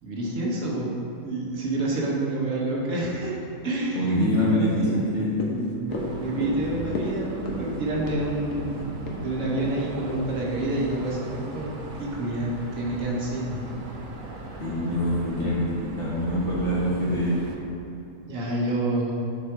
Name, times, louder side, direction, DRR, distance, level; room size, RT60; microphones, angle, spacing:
voice 1, 0.0-3.3 3.6-4.0 4.4-4.5 5.5-8.9 9.2-11.7 12.0-13.6 18.3-19.1, right 2 dB, 70° right, -4 dB, 1.5 m, -28 dB
voice 2, 3.9-5.4 14.6-17.4, equal, 40° left, -7 dB, 1.6 m, -24 dB
sound 1, 4.9-11.3 11.7-11.8, left 2 dB, 70° left, 1.2 m, -36 dB
sound 2, 5.9-17.6, right 2 dB, 50° right, 0.6 m, -38 dB
6.7 x 4.1 x 4.6 m, 2.7 s
omnidirectional pair, 1.5 m